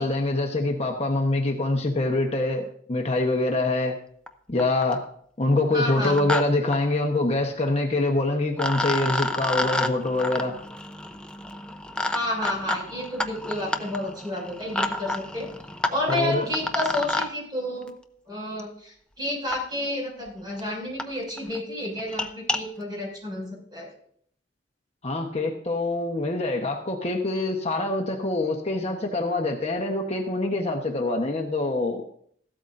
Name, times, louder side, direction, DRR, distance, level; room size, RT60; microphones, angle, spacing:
voice 1, 0.0-4.0 4.5-5.1 5.4-10.5 16.1-16.4 25.0-32.0, left 2 dB, 35° left, 2 dB, 1.1 m, -25 dB
sound 1, 4.3-4.4 4.6-5.0 5.9-6.4 6.7-6.8 8.1-8.2 8.6-17.3 18.6-18.7 19.5-19.6 20.3-20.4 20.6-20.7 21.0-21.1 21.4-21.6 22.0-22.6, left 1 dB, 5° left, 0.7 m, -30 dB
voice 2, 5.7-6.3 12.1-15.5 15.9-17.9 18.3-23.9, left 1 dB, 25° right, -1 dB, 6.3 m, -30 dB
15.5 x 12.5 x 2.6 m, 0.62 s
head